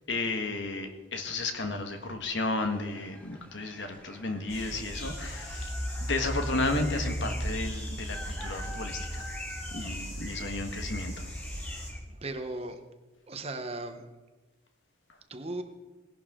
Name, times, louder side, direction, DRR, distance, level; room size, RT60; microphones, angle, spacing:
voice 1, 0.1-5.7 6.0-9.2 9.7-11.3, left 2 dB, 65° left, 6 dB, 1.5 m, -33 dB
sound 1, 2.6-12.0, left 1 dB, 5° left, 0.8 m, -45 dB
sound 2, 4.5-11.9, equal, 35° left, 3.4 m, -36 dB
voice 2, 12.1-12.8 13.3-14.0 15.3-15.6, right 2 dB, 30° right, 7 dB, 1.0 m, -37 dB
18.0 x 11.5 x 3.8 m, 1.2 s
head